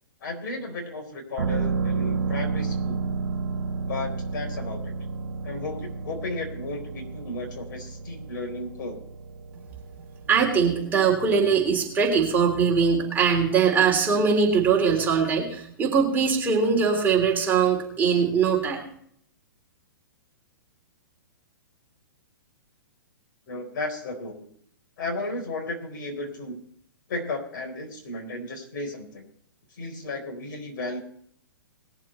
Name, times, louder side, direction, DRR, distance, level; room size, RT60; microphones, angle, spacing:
voice 1, 0.2-3.1 3.9-4.9 5.4-9.0 23.5-24.5 25.0-26.6 27.1-29.3 29.7-31.0, left 2 dB, 60° left, 3 dB, 4.1 m, -34 dB
sound 1, 1.4-12.9 13.2-13.3, right 5 dB, 80° right, 1.3 m, -32 dB
voice 2, 10.3-18.9, right 6 dB, 15° right, -1 dB, 3.3 m, -21 dB
20.5 x 7.4 x 4.3 m, 0.66 s
hypercardioid pair, 130°, 12 cm